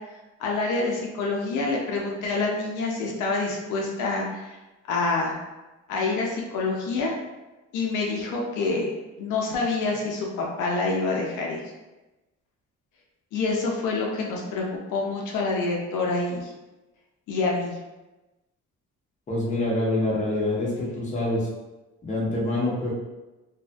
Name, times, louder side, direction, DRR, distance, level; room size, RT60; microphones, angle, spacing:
voice 1, 0.4-4.6 4.9-5.4 5.9-7.1 7.7-8.9 9.2-11.6 13.3-16.5 17.3-17.7, left 3 dB, 85° left, -2 dB, 0.5 m, -27 dB
voice 2, 19.3-21.5 22.0-22.9, left 1 dB, 25° left, -5 dB, 0.8 m, -26 dB
2.6 x 2.4 x 2.3 m, 1.1 s
cardioid pair, 90°, 30 cm